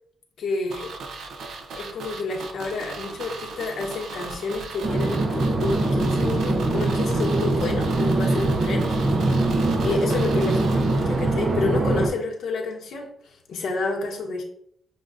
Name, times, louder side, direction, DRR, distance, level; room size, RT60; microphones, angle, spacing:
voice 1, 0.4-0.9 1.8-8.9 9.8-14.4, left 3 dB, 75° left, 0 dB, 0.9 m, -29 dB
sound 1, 0.7-11.6 11.9-12.0, right 3 dB, 80° right, 0.5 m, -38 dB
sound 2, 4.8-12.1, right 2 dB, 35° right, 0.5 m, -23 dB
6.2 x 2.2 x 2.4 m, 0.67 s
wide cardioid pair, 155°, 0 cm